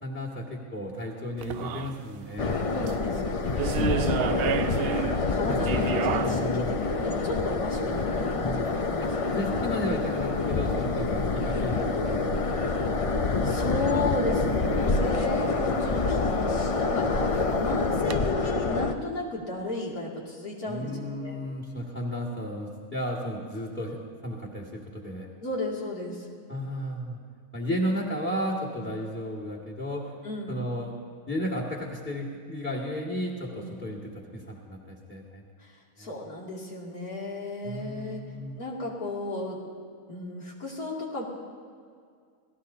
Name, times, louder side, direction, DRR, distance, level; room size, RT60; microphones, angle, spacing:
voice 1, 0.0-3.0 5.5-5.6 6.2-6.8 8.4-8.7 9.0-13.3 20.7-25.3 26.5-27.2 27.5-30.1 30.5-30.9 31.3-35.4 36.0-36.1 37.6-38.6, equal, 10° left, -3 dB, 2.0 m, -34 dB
sound 1, 1.4-18.2, right 9 dB, 75° right, 0.5 m, -37 dB
sound 2, 2.4-18.9, left 3 dB, 40° left, 0.4 m, -27 dB
voice 2, 2.7-4.6 5.3-9.1 13.4-17.2 17.5-20.9 21.2-21.4 25.4-26.3 28.8-28.9 30.2-30.6 33.6-33.8 35.6-35.7 36.0-38.2 38.6-39.6 40.1-41.2, left 1 dB, 85° left, -4 dB, 3.1 m, -34 dB
28.5 x 17.5 x 2.8 m, 2.1 s
omnidirectional pair, 1.5 m